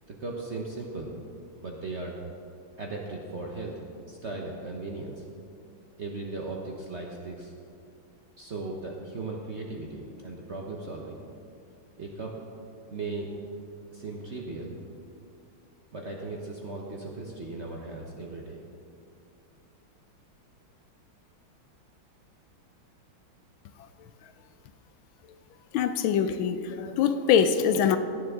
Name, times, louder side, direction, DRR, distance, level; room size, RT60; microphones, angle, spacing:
voice 1, 0.2-1.1 1.6-2.2 2.8-3.8 4.1-5.2 6.0-7.5 8.4-11.2 12.0-12.4 12.9-13.3 13.9-14.7 15.9-18.6, right 3 dB, 50° right, -1 dB, 0.9 m, -37 dB
voice 2, 25.7-28.0, left 8 dB, 80° left, 10 dB, 1.4 m, -23 dB
16.5 x 9.8 x 3.7 m, 2.5 s
omnidirectional pair, 2.3 m